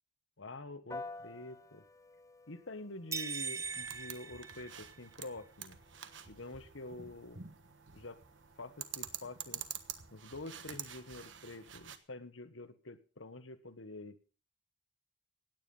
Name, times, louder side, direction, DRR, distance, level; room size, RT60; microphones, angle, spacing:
voice 1, 0.4-1.8 2.5-5.8 6.3-7.4 7.9-8.2 8.6-9.6 10.1-14.2, left 2 dB, 90° left, 11 dB, 1.5 m, -47 dB
Piano, 0.9-10.6, left 3 dB, 15° left, 1.0 m, -54 dB
sound 1, 3.1-5.3, right 5 dB, 15° right, 0.6 m, -40 dB
sound 2, 3.6-12.0, right 9 dB, 75° right, 1.4 m, -48 dB
17.0 x 9.6 x 5.5 m, 0.39 s
head